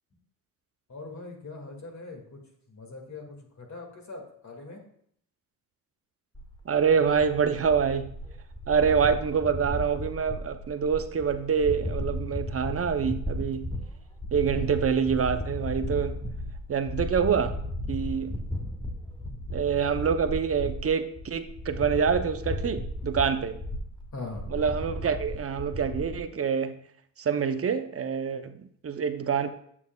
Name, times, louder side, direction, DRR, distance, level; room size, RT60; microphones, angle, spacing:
voice 1, 0.9-2.4 2.7-4.8 24.1-24.5, left 3 dB, 45° left, 1 dB, 2.1 m, -41 dB
sound 1, 6.3-26.2, left 1 dB, 10° left, 1.1 m, -35 dB
voice 2, 6.7-8.2 8.7-13.7 14.3-16.2 16.7-17.5 17.9-18.4 19.5-23.6 24.5-26.8 27.2-29.5, right 6 dB, 35° right, 9 dB, 0.7 m, -26 dB
8.3 x 7.1 x 2.3 m, 0.67 s
supercardioid pair, 60°, 38 cm